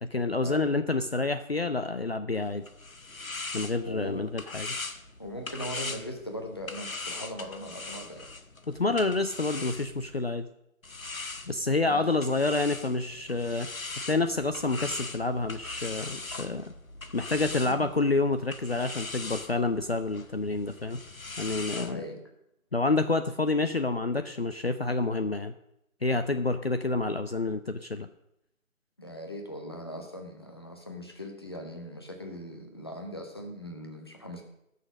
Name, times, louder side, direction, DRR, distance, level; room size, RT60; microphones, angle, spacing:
voice 1, 0.0-2.6 3.5-4.8 8.7-10.5 11.5-13.7 14.0-16.6 17.1-21.0 21.4-22.0 22.7-25.5 26.0-28.1, left 3 dB, 50° left, 9 dB, 0.6 m, -28 dB
sound 1, 2.4-10.2 10.8-21.9, left 3 dB, 80° left, 1.3 m, -41 dB
voice 2, 3.8-4.2 5.2-8.3 11.8-12.3 21.7-22.2 29.0-34.4, equal, 20° left, 3 dB, 0.9 m, -40 dB
17.0 x 6.7 x 6.4 m, 0.82 s
figure-of-eight pair, 160°, 41 cm